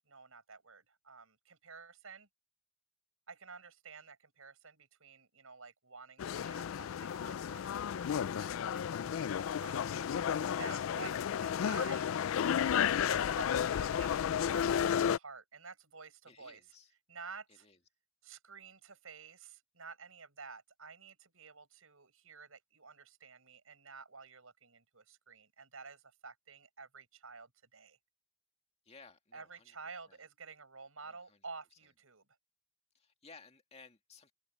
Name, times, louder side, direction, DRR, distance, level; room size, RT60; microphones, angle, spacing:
voice 1, 0.0-2.3 3.3-12.1 13.1-16.6 17.1-17.7 18.2-28.0 29.3-32.2, right 4 dB, 80° right, 5.9 m, -51 dB
sound 1, 6.2-15.2, left 8 dB, 75° left, 0.3 m, -32 dB
voice 2, 16.3-16.9 17.5-17.8 28.9-29.8 30.1-30.2 31.0-31.4 32.9-34.3, left 4 dB, 30° left, 2.2 m, -58 dB
open air
head